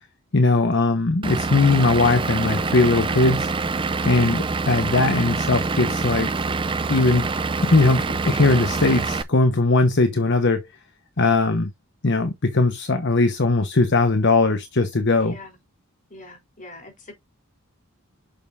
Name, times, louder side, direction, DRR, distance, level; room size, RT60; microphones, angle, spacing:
voice 1, 0.3-3.5 4.0-6.3 6.9-7.2 7.6-10.7 11.2-11.7 12.0-15.4, left 3 dB, 55° left, 1.1 m, -19 dB
Vehicle / Engine, 1.2-9.2, right 3 dB, 25° right, 0.5 m, -25 dB
voice 2, 4.0-4.4 15.2-15.6 16.1-17.1, left 2 dB, 35° left, 3.7 m, -42 dB
8.9 x 6.7 x 2.6 m
head